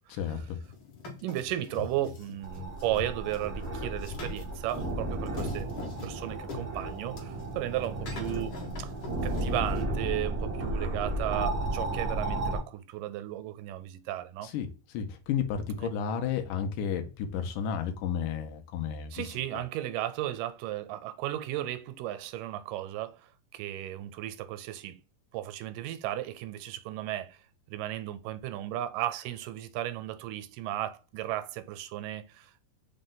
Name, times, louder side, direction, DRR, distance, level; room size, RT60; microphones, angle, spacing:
voice 1, 0.1-0.6 14.4-19.3, left 7 dB, 80° left, 2.1 m, -32 dB
sound 1, 0.6-9.8, left 4 dB, 60° left, 1.4 m, -43 dB
voice 2, 1.2-5.7 6.0-8.9 9.2-14.5 15.8-15.9 19.1-25.0 25.3-27.4 27.7-32.6, right 13 dB, 85° right, 2.1 m, -35 dB
sound 2, 2.4-12.6, right 2 dB, 45° right, 0.5 m, -33 dB
5.3 x 2.2 x 3.7 m
omnidirectional pair, 3.7 m